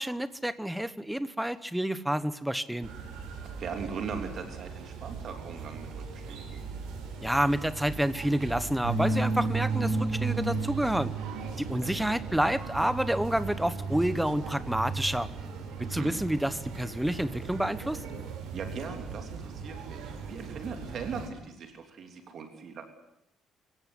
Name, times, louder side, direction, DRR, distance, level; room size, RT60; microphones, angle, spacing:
voice 1, 0.0-2.9 7.2-11.1 11.6-15.3 15.8-18.0, right 1 dB, 5° right, 14 dB, 0.9 m, -29 dB
sound 1, 2.8-21.3, right 3 dB, 80° right, 6.3 m, -35 dB
voice 2, 3.6-6.6 11.8-12.0 15.8-16.2 18.5-22.8, right 5 dB, 40° right, 5 dB, 3.2 m, -40 dB
24.5 x 16.5 x 9.8 m, 0.84 s
cardioid pair, 180°, 0 cm